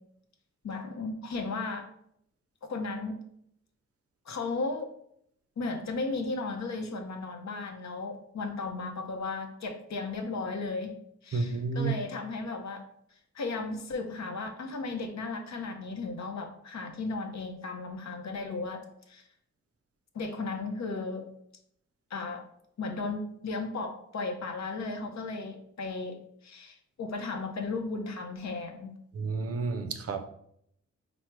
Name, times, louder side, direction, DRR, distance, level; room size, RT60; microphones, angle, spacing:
voice 1, 0.6-1.9 2.6-3.2 4.3-4.9 5.6-10.9 11.2-12.9 13.3-19.2 20.1-21.2 22.1-22.5 22.8-26.2 26.4-28.9, left 3 dB, 70° left, 0.6 m, -35 dB
voice 2, 11.3-11.9 29.1-30.2, right 4 dB, 55° right, 0.4 m, -30 dB
4.5 x 2.0 x 4.5 m
wide cardioid pair, 105°, 29 cm